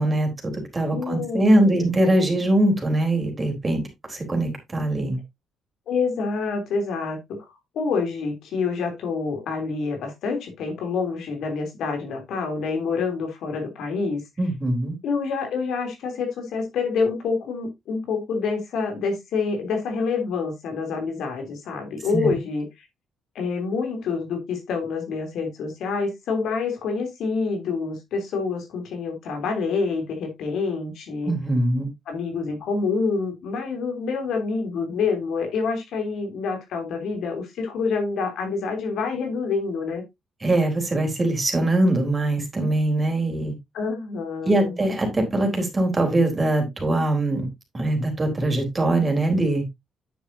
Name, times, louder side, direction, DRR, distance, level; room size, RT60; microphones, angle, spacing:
voice 1, 0.0-3.8 4.1-5.2 14.4-14.9 22.1-22.3 31.3-31.9 40.4-43.5 44.5-47.5 47.7-49.6, right 1 dB, 25° right, 3 dB, 3.8 m, -22 dB
voice 2, 0.9-1.9 5.9-7.4 7.7-14.2 15.0-22.6 23.3-31.3 32.1-40.0 43.7-44.8, left 4 dB, 75° left, 4 dB, 3.2 m, -27 dB
9.3 x 7.2 x 2.7 m, 0.19 s
cardioid pair, 90°, 0 cm